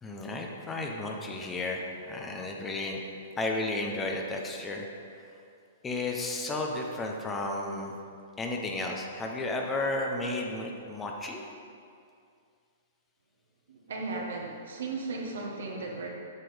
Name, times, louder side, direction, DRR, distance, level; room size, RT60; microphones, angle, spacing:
voice 1, 0.0-3.0 3.4-4.9 5.1-5.3 5.8-8.0 8.4-11.4, left 2 dB, 15° left, 1 dB, 1.0 m, -33 dB
voice 2, 13.7-16.1, right 3 dB, 70° right, -1 dB, 1.7 m, -36 dB
8.3 x 6.0 x 5.2 m, 2.4 s
hypercardioid pair, 115°, 0 cm